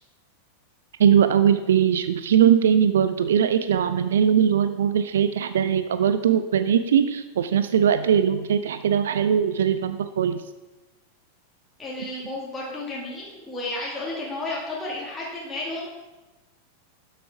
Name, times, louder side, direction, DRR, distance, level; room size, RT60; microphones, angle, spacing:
voice 1, 1.0-10.4, right 8 dB, 60° right, 10 dB, 0.4 m, -20 dB
voice 2, 11.8-15.9, left 2 dB, 10° left, -6 dB, 2.1 m, -32 dB
12.0 x 6.7 x 3.6 m, 1.1 s
figure-of-eight pair, 90°, 0 cm